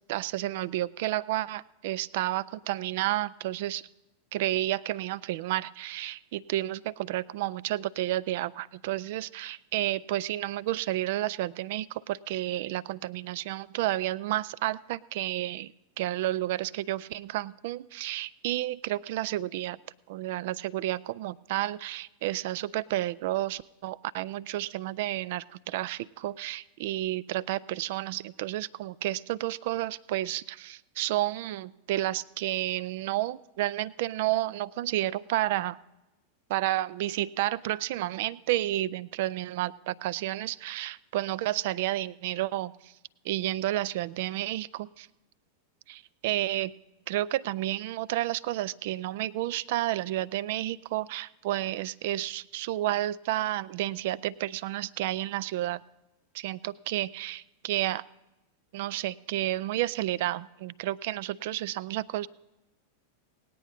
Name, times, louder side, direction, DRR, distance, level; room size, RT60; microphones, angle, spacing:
voice 1, 0.1-3.9 4.3-19.8 20.1-35.8 36.5-42.9 43.2-45.1 45.9-46.7 47.1-55.8 56.3-58.0 58.7-62.3, right 15 dB, 50° right, 21 dB, 0.3 m, -31 dB
18.5 x 9.1 x 4.1 m, 0.99 s
figure-of-eight pair, 90°, 0 cm